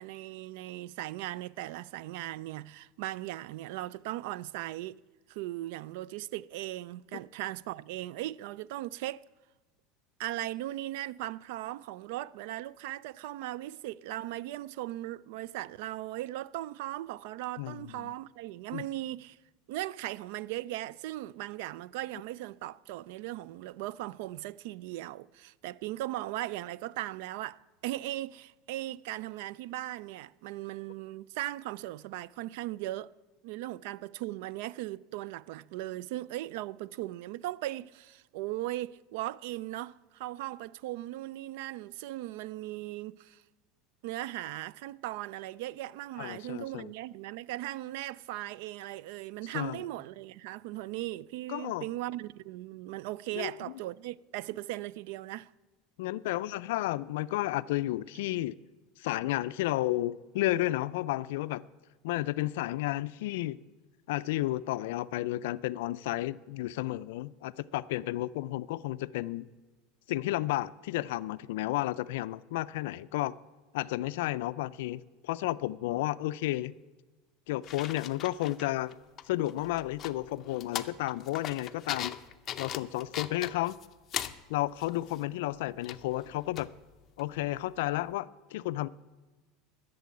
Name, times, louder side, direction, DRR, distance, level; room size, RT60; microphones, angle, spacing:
voice 1, 0.0-5.0 5.3-9.2 10.2-19.4 19.7-33.1 33.4-43.4 44.0-55.5, right 15 dB, 70° right, 0.3 m, -38 dB
voice 2, 17.6-18.1 18.7-18.9 46.2-46.9 49.5-49.8 51.5-51.9 53.4-53.6 56.0-58.6 59.0-61.6 62.0-63.6 64.1-69.5 70.1-73.3 73.7-76.7 77.5-78.9 79.2-82.1 82.6-83.8 84.5-86.7 87.2-88.9, left 16 dB, 80° left, 0.3 m, -32 dB
sound 1, 77.6-78.9 79.2-84.4 84.8-85.2 85.8-86.7 87.2-87.3, left 10 dB, 35° left, 0.6 m, -40 dB
12.0 x 6.8 x 9.5 m
supercardioid pair, 140°, 0 cm